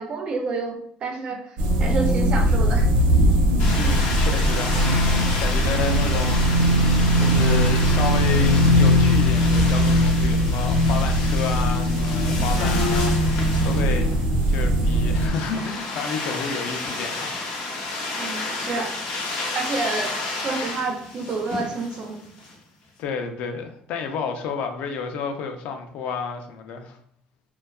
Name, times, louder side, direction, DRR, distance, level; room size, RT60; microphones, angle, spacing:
voice 1, 0.0-2.9 18.1-18.9 19.5-22.2, right 3 dB, 35° right, 4 dB, 0.4 m, -29 dB
sound 1, 1.6-15.3, equal, 70° right, 0.7 m, -20 dB
sound 2, 3.6-22.5, left 2 dB, 80° left, 0.7 m, -32 dB
voice 2, 3.7-6.6 7.1-14.1 14.5-17.8 23.0-27.0, left 5 dB, 60° left, 6 dB, 0.3 m, -31 dB
sound 3, 12.6-13.6, left 4 dB, 45° left, 0.8 m, -28 dB
2.6 x 2.2 x 2.2 m, 0.68 s
cardioid pair, 160°, 3 cm